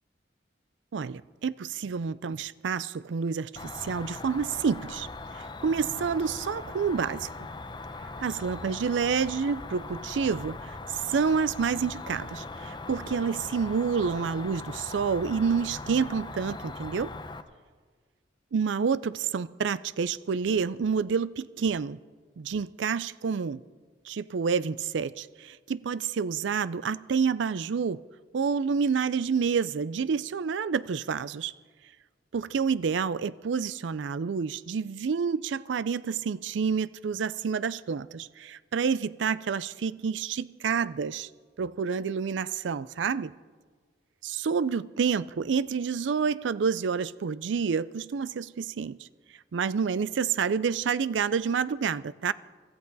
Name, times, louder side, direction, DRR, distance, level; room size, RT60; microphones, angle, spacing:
voice 1, 0.9-5.1 5.3-7.3 8.2-17.1 18.5-22.0 22.4-23.6 24.1-28.0 28.3-31.5 32.3-41.3 41.6-43.3 44.2-49.1 49.5-52.3, right 6 dB, 80° right, 0.4 m, -28 dB
Cricket, 3.6-17.4, left 3 dB, 25° left, 0.7 m, -40 dB
25.0 x 13.5 x 4.0 m
head